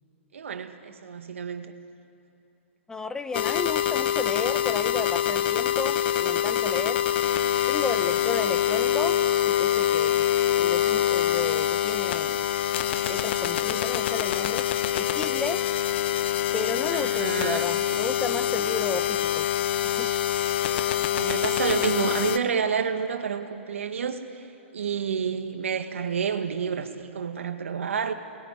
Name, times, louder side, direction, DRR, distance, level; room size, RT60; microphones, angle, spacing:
voice 1, 0.3-1.7 16.9-17.6 20.9-24.5 24.7-28.1, right 7 dB, 80° right, 6 dB, 2.0 m, -29 dB
voice 2, 2.9-7.0 7.7-9.2 9.4-10.2 10.6-12.5 13.1-14.7 14.9-15.6 16.5-19.5 19.8-20.1, left 3 dB, 10° left, 10 dB, 1.1 m, -33 dB
sound 1, 3.3-22.4, left 11 dB, 55° left, 1.1 m, -25 dB
29.5 x 21.0 x 9.6 m, 2.8 s
hypercardioid pair, 125°, 7 cm